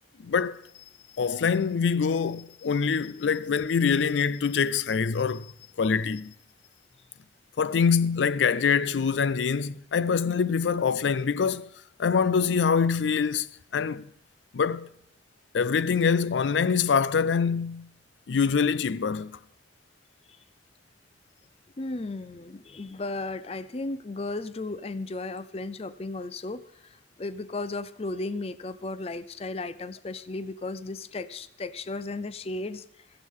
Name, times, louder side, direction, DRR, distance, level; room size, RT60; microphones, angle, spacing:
voice 1, 0.2-0.6 1.2-5.5 5.8-6.3 7.6-11.7 12.0-13.5 13.7-14.0 14.5-14.9 15.5-17.9 18.3-19.4, left 6 dB, 90° left, 0.4 m, -24 dB
voice 2, 21.8-32.8, left 2 dB, 35° left, 0.5 m, -35 dB
15.5 x 14.5 x 3.7 m
head